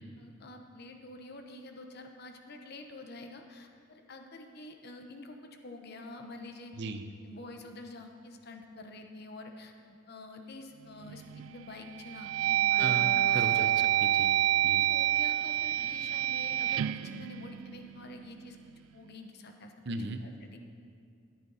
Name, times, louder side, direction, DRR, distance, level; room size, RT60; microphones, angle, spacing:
voice 1, 0.2-6.7 7.2-13.7 14.5-14.6 14.9-18.6 18.9-19.7 20.2-20.6, left 2 dB, 55° left, 4 dB, 0.9 m, -47 dB
sound 1, 11.1-11.5 12.0-18.2, right 13 dB, 85° right, 0.3 m, -28 dB
Acoustic guitar, 12.8-16.1, left 2 dB, 75° left, 2.4 m, -43 dB
voice 2, 13.3-14.4 14.6-14.8 19.9-20.2, right 3 dB, 60° right, 8 dB, 0.7 m, -36 dB
13.5 x 9.5 x 4.1 m, 2.4 s
head